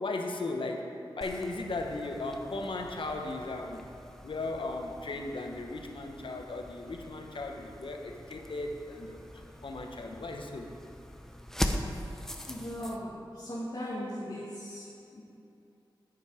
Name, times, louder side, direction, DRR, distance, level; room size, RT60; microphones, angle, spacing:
voice 1, 0.0-3.8 4.2-10.7, left 2 dB, 80° left, 3 dB, 1.0 m, -37 dB
sound 1, 1.2-13.0, equal, 5° left, 0.6 m, -41 dB
voice 2, 12.5-15.2, equal, 65° left, -8 dB, 1.9 m, -38 dB
9.0 x 8.5 x 4.9 m, 2.7 s
wide cardioid pair, 85°, 9 cm